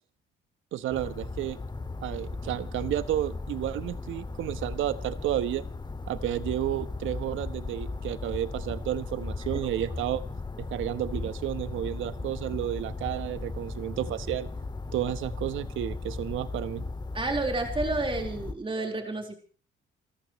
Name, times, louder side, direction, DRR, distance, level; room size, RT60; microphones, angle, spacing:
voice 1, 0.7-1.6 2.0-5.6 6.1-10.2 10.6-14.5 14.9-16.8, right 12 dB, 80° right, 13 dB, 1.2 m, -31 dB
sound 1, 0.9-18.5, left 3 dB, 20° left, 2.2 m, -37 dB
voice 2, 17.1-19.3, right 2 dB, 25° right, 2 dB, 4.3 m, -30 dB
28.5 x 14.5 x 3.2 m, 0.40 s
cardioid pair, 90°, 20 cm